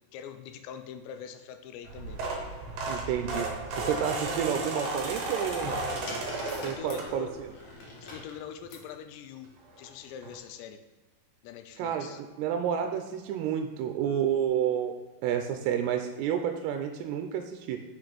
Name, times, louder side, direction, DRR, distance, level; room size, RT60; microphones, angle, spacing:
voice 1, 0.1-2.2 3.7-3.8 6.3-7.3 8.0-9.5 9.8-10.8 11.4-12.2, left 8 dB, 85° left, 8 dB, 2.7 m, -44 dB
sound 1, 1.8-7.5 7.9-8.2 9.4-9.5 9.8-9.9 10.2-10.4, right 2 dB, 65° right, 2.0 m, -34 dB
voice 2, 2.9-3.5 3.8-5.8 6.6-7.5 11.8-14.9 15.2-17.8, right 9 dB, 85° right, 6 dB, 2.4 m, -30 dB
sound 2, 5.4-8.9 9.9-10.3, left 2 dB, 60° left, 2.2 m, -44 dB
6.5 x 5.8 x 5.1 m, 1.3 s
omnidirectional pair, 5.2 m